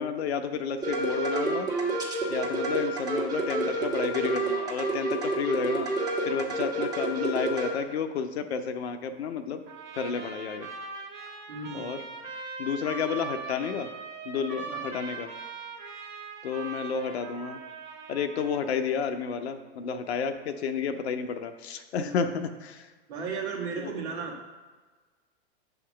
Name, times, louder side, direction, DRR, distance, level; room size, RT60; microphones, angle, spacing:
voice 1, 0.0-1.7 2.3-5.9 6.3-9.6 9.9-10.7 11.7-12.0 12.6-13.9 14.2-15.3 16.4-17.6 18.1-22.9 23.7-23.9, left 6 dB, 70° left, 8 dB, 0.7 m, -31 dB
sound 1, 0.8-7.7, right 2 dB, 10° right, 1.4 m, -29 dB
Trumpet, 9.7-18.8, right 5 dB, 35° right, 1.6 m, -41 dB
voice 2, 11.5-11.9 14.8-14.9 21.9-22.2 23.1-24.3, right 4 dB, 70° right, -2 dB, 1.6 m, -35 dB
7.8 x 2.9 x 6.1 m, 1.3 s
hypercardioid pair, 105°, 33 cm